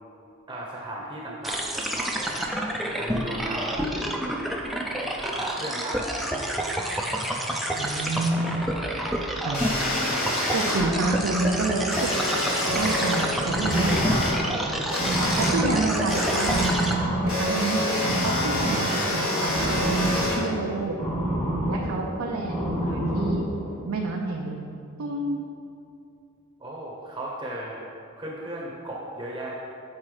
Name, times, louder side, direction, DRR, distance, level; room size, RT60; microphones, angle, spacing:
voice 1, 0.5-2.7 3.0-4.1 5.2-6.3 7.2-7.5 8.3-8.7 26.6-27.8 28.2-29.6, right 1 dB, 20° right, -3 dB, 0.8 m, -36 dB
sound 1, 1.4-16.9, right 1 dB, ahead, 0.4 m, -29 dB
voice 2, 7.8-8.8 9.4-9.6 10.5-12.1 12.8-14.9 15.4-16.6 17.2-17.9 18.2-19.9 20.4-21.0 21.7-23.5 23.8-25.4, right 2 dB, 85° right, -1 dB, 0.6 m, -29 dB
sound 2, 9.5-10.8 11.9-13.2 13.7-14.3 14.9-15.5 16.1-16.7 17.3-20.4, left 1 dB, 85° left, 1.7 m, -27 dB
sound 3, 12.7-23.8, right 1 dB, 30° left, 1.2 m, -29 dB
7.4 x 4.2 x 4.8 m, 2.5 s
head